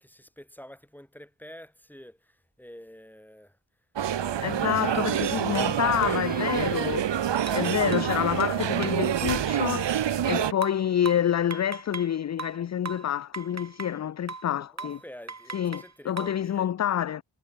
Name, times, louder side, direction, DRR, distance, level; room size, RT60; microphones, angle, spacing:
voice 1, 0.0-3.6 14.6-16.7, equal, 5° left, 3.8 m, -48 dB
sound 1, 4.0-10.5, right 10 dB, 80° right, 1.0 m, -27 dB
sound 2, 4.1-10.3, right 2 dB, 20° right, 5.2 m, -45 dB
voice 2, 4.4-7.2 7.5-15.0 15.5-17.2, left 10 dB, 40° left, 0.4 m, -28 dB
sound 3, 5.1-5.2 5.5-5.7 6.0-6.8 7.5-9.6 10.6-12.1 12.4-14.0 14.3-14.5 14.8-15.0 15.3-16.4, right 4 dB, 40° right, 2.5 m, -39 dB
cardioid pair, 65°, 42 cm